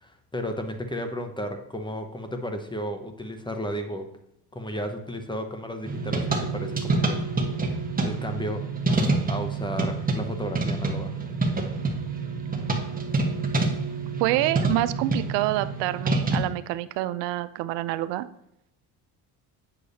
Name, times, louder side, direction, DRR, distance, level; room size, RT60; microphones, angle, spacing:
voice 1, 0.0-4.1 4.5-7.2 8.0-8.6 9.3-11.1, equal, 10° left, 6 dB, 0.9 m, -33 dB
sound 1, 5.8-16.4, right 3 dB, 20° right, 1.1 m, -27 dB
voice 2, 14.2-18.3, right 15 dB, 80° right, 13 dB, 0.5 m, -27 dB
8.2 x 6.5 x 2.7 m, 0.78 s
supercardioid pair, 85°, 41 cm